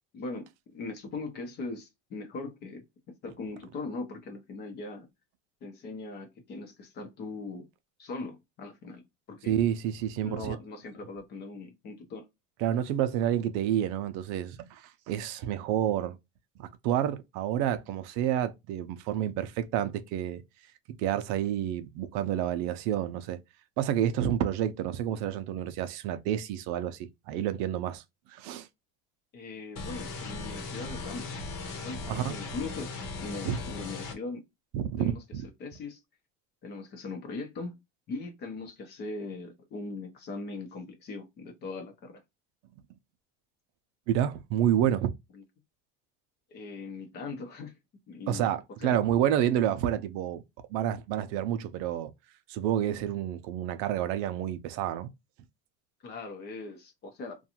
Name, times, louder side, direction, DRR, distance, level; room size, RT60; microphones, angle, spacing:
voice 1, 0.1-2.8 3.2-5.1 5.6-7.7 8.0-9.0 9.3-9.5 10.2-12.2 29.3-31.3 31.8-32.9 33.2-34.4 35.0-35.2 35.6-36.0 36.6-37.8 38.1-42.2 45.3-45.4 46.5-47.7 48.1-48.5 48.8-49.0 56.0-57.4, left 3 dB, 35° left, 0.7 m, -40 dB
voice 2, 9.5-10.6 12.6-16.2 16.6-20.4 21.0-23.4 23.8-28.0 28.3-28.7 32.1-32.4 33.4-33.6 34.7-35.4 44.1-45.1 48.3-50.4 50.7-52.1 52.5-55.1, right 10 dB, 65° right, 0.5 m, -29 dB
sound 1, 29.8-34.2, left 3 dB, 60° left, 1.0 m, -38 dB
2.5 x 2.3 x 2.8 m
cardioid pair, 175°, 31 cm